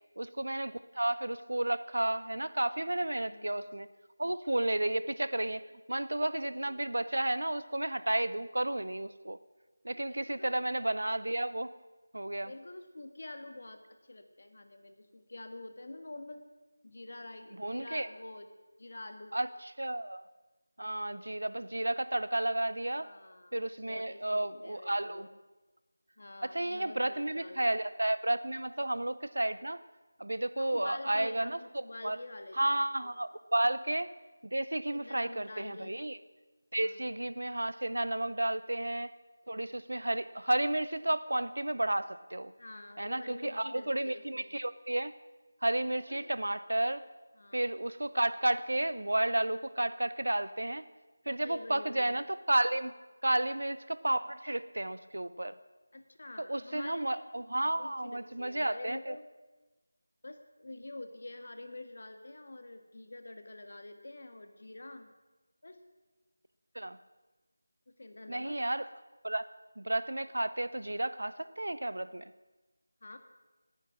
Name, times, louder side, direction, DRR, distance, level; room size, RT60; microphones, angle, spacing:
voice 1, 0.2-3.9 4.2-5.6 5.9-9.4 9.8-11.7 12.1-12.5 17.6-18.1 19.3-20.2 20.8-23.1 23.5-25.3 26.4-29.8 30.2-32.2 32.6-34.1 34.4-36.2 36.7-39.1 39.5-42.5 43.0-45.1 45.6-47.0 47.5-50.9 51.3-52.9 53.2-55.6 56.4-59.1 66.7-67.0 68.3-68.9 69.2-69.5 69.8-72.3, right 1 dB, 80° right, 14 dB, 0.6 m, -32 dB
voice 2, 3.2-3.7 6.5-6.9 10.1-10.6 12.4-13.8 14.1-16.4 16.8-18.5 18.8-19.4 23.0-25.4 26.2-27.8 30.5-33.1 34.9-36.0 36.7-37.0 42.6-44.6 46.1-46.3 47.4-47.7 51.4-52.2 55.9-57.3 57.7-59.3 60.2-65.1 65.6-65.8 68.0-68.6 73.0-73.2, left 2 dB, 55° left, 7 dB, 1.6 m, -47 dB
19.0 x 10.0 x 6.0 m, 1.2 s
figure-of-eight pair, 170°, 0 cm